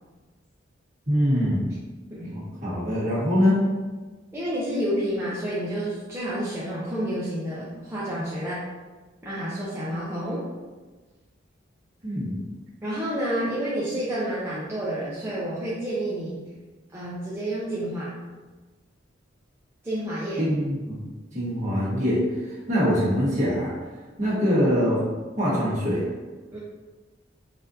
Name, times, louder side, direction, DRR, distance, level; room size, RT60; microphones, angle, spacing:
voice 1, 1.1-1.6 2.3-3.6 12.0-12.3 20.4-21.0 21.3-22.2 22.7-23.7 24.2-25.0 25.4-26.0, equal, 40° right, -8 dB, 1.4 m, -23 dB
voice 2, 4.3-8.6 9.2-10.4 12.8-16.4 16.9-18.2 19.8-20.4 26.5-26.6, right 1 dB, 15° right, -9 dB, 0.5 m, -29 dB
4.1 x 2.6 x 2.6 m, 1.3 s
head